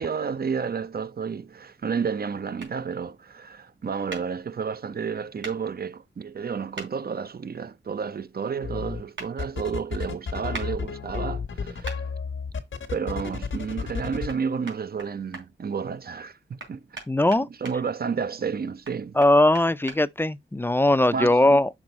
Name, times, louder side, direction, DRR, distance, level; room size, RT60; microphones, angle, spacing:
voice 1, 0.0-12.0 12.9-16.8 17.6-19.2 21.1-21.6, right 6 dB, 55° right, 0.6 m, -31 dB
sound 1, 2.6-2.7 4.1-4.2 5.4-5.6 6.7-6.9 9.2-9.3 10.5-10.7 11.8-12.0 14.3-14.4 14.7-15.4 16.6-17.8 18.8-20.0, right 3 dB, 85° right, 3.4 m, -38 dB
sound 2, 8.6-9.0 9.4-14.3, left 5 dB, 85° left, 1.2 m, -31 dB
voice 2, 17.1-17.5 19.2-21.7, left 1 dB, 10° left, 0.4 m, -20 dB
6.2 x 4.1 x 5.3 m
wide cardioid pair, 95°, 19 cm